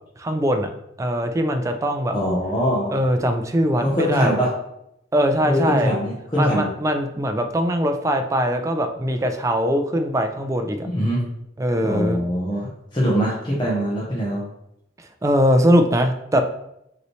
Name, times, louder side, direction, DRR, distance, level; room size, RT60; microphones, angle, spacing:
voice 1, 0.2-0.7 1.0-2.2 2.9-4.4 5.1-5.9 6.4-10.9 11.6-12.2 15.2-16.4, equal, 15° right, 6 dB, 0.4 m, -21 dB
voice 2, 2.1-3.0 3.8-4.5 5.4-6.7 10.8-11.2 11.8-14.4, equal, 25° left, -6 dB, 0.9 m, -22 dB
5.3 x 3.1 x 3.1 m, 0.80 s
head